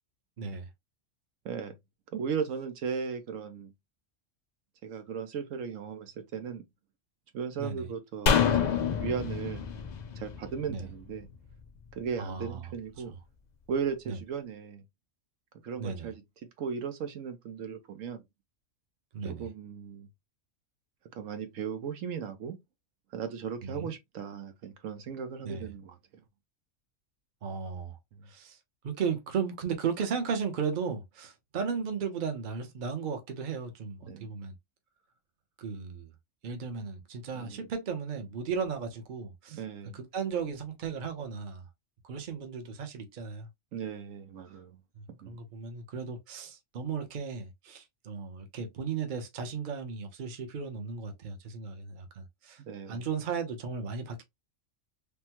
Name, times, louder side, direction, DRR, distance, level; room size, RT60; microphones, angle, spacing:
voice 1, 0.4-0.7 7.6-7.9 10.7-10.9 12.2-12.7 14.1-14.2 15.8-16.1 19.1-19.5 23.6-23.9 25.4-25.7 27.4-28.0 28.3-28.6 28.8-34.5 35.6-36.1 36.4-39.6 39.9-41.6 42.0-43.5 44.5-44.6 45.0-52.6 52.9-54.2, right 6 dB, 45° right, 0.8 m, -35 dB
voice 2, 1.4-1.7 2.1-3.7 4.8-6.6 7.3-9.6 10.2-11.3 11.9-13.1 13.7-14.8 15.6-16.2 16.6-18.2 19.2-20.1 21.1-22.6 23.1-26.0 34.0-34.3 37.3-37.7 39.5-40.0 43.7-44.8 45.2-45.4 52.7-53.1, right 6 dB, 85° right, 1.1 m, -36 dB
sound 1, 8.3-11.6 11.9-12.0, left 7 dB, 80° left, 0.4 m, -28 dB
3.5 x 2.1 x 2.9 m
omnidirectional pair, 1.3 m